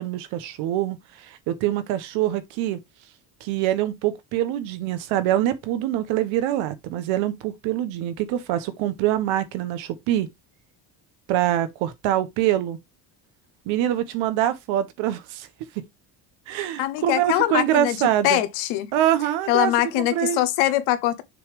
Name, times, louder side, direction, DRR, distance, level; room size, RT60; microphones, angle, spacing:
voice 1, 0.0-2.8 3.4-10.3 11.3-12.8 13.7-15.5 15.7-15.8 16.5-18.4 18.9-20.4, right 12 dB, 85° right, 1.3 m, -24 dB
voice 2, 16.8-18.0 18.2-18.9 19.5-21.2, left 14 dB, 85° left, 1.3 m, -22 dB
6.7 x 3.4 x 5.1 m
cardioid pair, 100°, 46 cm